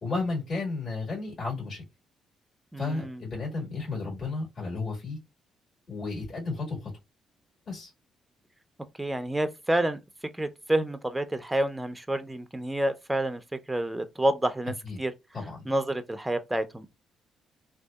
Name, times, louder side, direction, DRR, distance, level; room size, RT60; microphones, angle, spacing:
voice 1, 0.0-1.8 2.8-5.2 5.9-6.9 7.7-7.9 14.8-15.0 15.3-15.6, left 3 dB, 50° left, 1.5 m, -33 dB
voice 2, 2.7-3.2 9.0-10.0 10.4-13.4 13.7-15.1 15.7-16.9, right 1 dB, 10° right, 0.4 m, -28 dB
2.6 x 2.2 x 2.3 m
cardioid pair, 90°, 0 cm